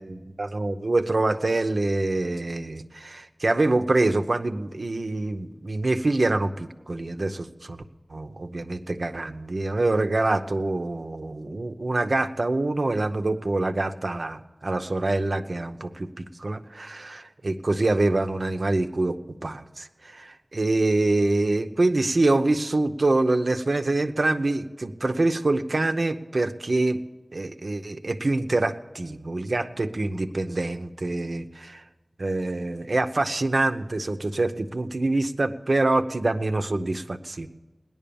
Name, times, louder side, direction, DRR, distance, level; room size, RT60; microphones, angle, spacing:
voice 1, 0.0-7.8 8.1-27.0 27.3-31.8 32.2-37.5, right 2 dB, 85° right, 7 dB, 0.8 m, -25 dB
18.0 x 11.0 x 7.0 m, 1.1 s
wide cardioid pair, 50°, 0 cm